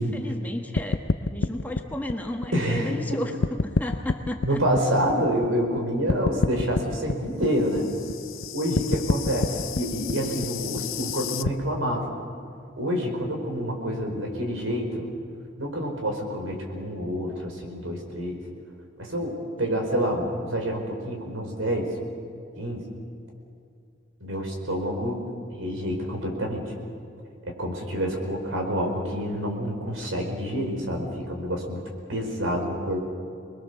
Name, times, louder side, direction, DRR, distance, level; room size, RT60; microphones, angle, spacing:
voice 1, 0.0-4.6 19.6-19.8, left 1 dB, 10° left, 2 dB, 1.3 m, -33 dB
sound 1, 0.8-3.1 3.4-5.8 6.1-11.5, left 4 dB, 85° left, 0.7 m, -28 dB
voice 2, 2.5-3.0 4.4-7.9 8.5-12.1 12.8-15.1 15.6-18.4 19.0-21.9 22.6-22.8 24.2-25.2 25.5-26.6 27.4-31.8 32.1-33.0, equal, 85° right, 2 dB, 4.9 m, -27 dB
28.0 x 21.5 x 6.9 m, 2.4 s
head